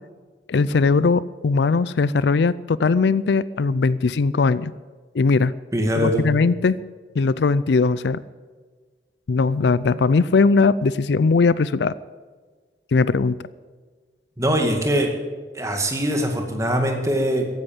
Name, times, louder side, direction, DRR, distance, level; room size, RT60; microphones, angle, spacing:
voice 1, 0.5-4.7 5.1-5.5 5.9-6.8 7.2-8.2 9.3-11.9 12.9-13.4, left 4 dB, 70° left, 18 dB, 0.4 m, -19 dB
voice 2, 5.7-6.3 14.4-15.1 15.5-17.4, equal, 15° right, 3 dB, 2.1 m, -22 dB
15.0 x 10.5 x 7.4 m, 1.5 s
head